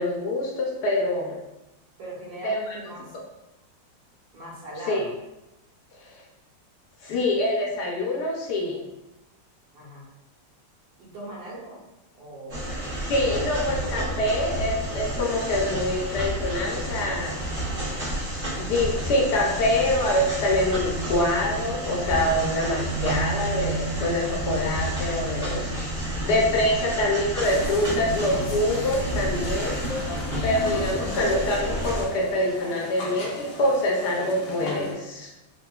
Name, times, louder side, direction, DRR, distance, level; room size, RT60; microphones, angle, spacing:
voice 1, 0.0-1.4 2.4-2.8 4.9-5.0 6.0-6.1 7.0-8.9 13.1-17.3 18.6-25.7 26.2-29.8 30.4-35.3, left 1 dB, 70° left, -2 dB, 1.1 m, -25 dB
voice 2, 2.0-3.1 4.3-5.1 9.7-10.1 11.0-11.8 12.2-12.6 26.6-26.8, right 1 dB, 80° right, -5 dB, 1.8 m, -39 dB
sound 1, 12.5-32.0, equal, 45° right, 1.3 m, -31 dB
sound 2, 16.6-29.6, right 3 dB, 60° right, 1.0 m, -36 dB
sound 3, 27.4-34.9, left 3 dB, 90° left, 1.3 m, -36 dB
3.6 x 2.7 x 2.3 m, 0.96 s
omnidirectional pair, 2.0 m